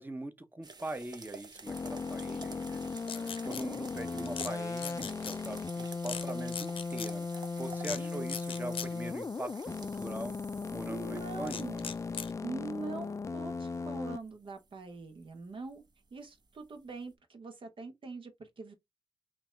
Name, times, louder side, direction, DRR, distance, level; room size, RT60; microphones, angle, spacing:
voice 1, 0.0-10.4 10.7-11.9, right 1 dB, 20° right, 0.8 m, -42 dB
sound 1, 0.6-17.1, right 3 dB, 50° right, 1.0 m, -51 dB
sound 2, 1.7-14.2, left 4 dB, 35° left, 0.3 m, -37 dB
sound 3, 3.1-3.6 4.3-4.5 4.8-5.4 6.1-6.3 6.5-7.1 7.8-8.0 8.3-8.9 11.5-12.3, left 7 dB, 85° left, 0.7 m, -39 dB
voice 2, 10.8-11.9 12.4-15.8 16.1-18.7, right 4 dB, 70° right, 1.5 m, -43 dB
3.5 x 3.0 x 4.6 m
wide cardioid pair, 110°, 9 cm